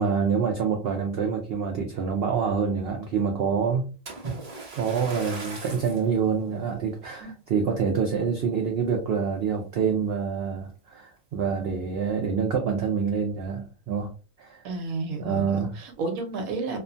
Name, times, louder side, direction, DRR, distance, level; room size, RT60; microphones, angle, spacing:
voice 1, 0.0-3.9 4.7-14.1 14.4-14.6 15.2-15.7, right 6 dB, 90° right, 0.5 m, -26 dB
Splash splatter, 4.1-6.1 6.8-7.0 7.6-7.7, right 3 dB, 35° right, 0.6 m, -38 dB
voice 2, 14.6-16.8, right 3 dB, 70° right, 1.1 m, -31 dB
2.9 x 2.1 x 2.5 m
omnidirectional pair, 1.6 m